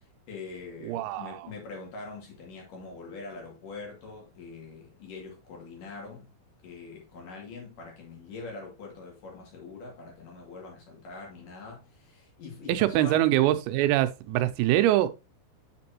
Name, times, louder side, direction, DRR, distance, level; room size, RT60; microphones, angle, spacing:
voice 1, 0.3-6.3 6.6-11.8 12.4-13.3, left 4 dB, 50° left, 3.2 m, -43 dB
voice 2, 0.9-1.4 12.7-15.1, right 14 dB, 90° right, 3.4 m, -24 dB
8.0 x 6.0 x 2.9 m
omnidirectional pair, 5.9 m